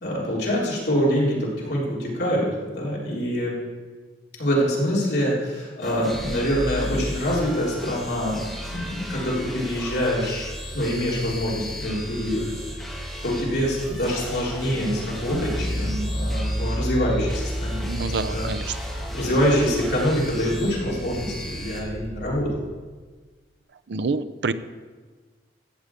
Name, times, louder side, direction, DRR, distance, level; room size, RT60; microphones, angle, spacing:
voice 1, 0.0-3.5 4.4-8.4 8.7-12.5 13.2-18.5 19.1-22.5, equal, 65° left, -5 dB, 3.6 m, -25 dB
sound 1, 5.8-21.8, left 1 dB, ahead, 1.9 m, -38 dB
sound 2, 6.1-22.6, equal, 20° left, 3.9 m, -37 dB
sound 3, 15.3-21.3, equal, 50° right, 2.2 m, -30 dB
voice 2, 17.8-18.8 23.9-24.5, right 4 dB, 70° right, 12 dB, 0.5 m, -27 dB
14.0 x 5.1 x 8.2 m, 1.4 s
head